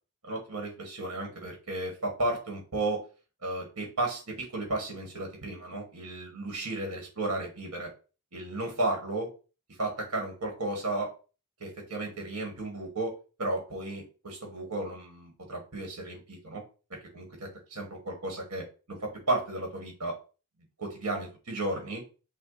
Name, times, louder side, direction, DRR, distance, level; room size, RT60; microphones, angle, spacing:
voice 1, 0.2-3.0 3.4-7.9 8.3-9.3 9.8-11.1 11.6-13.1 13.4-16.6 17.1-17.2 17.7-20.1 20.8-22.0, right 2 dB, 85° right, 2 dB, 1.5 m, -33 dB
5.9 x 2.2 x 3.9 m, 0.34 s
head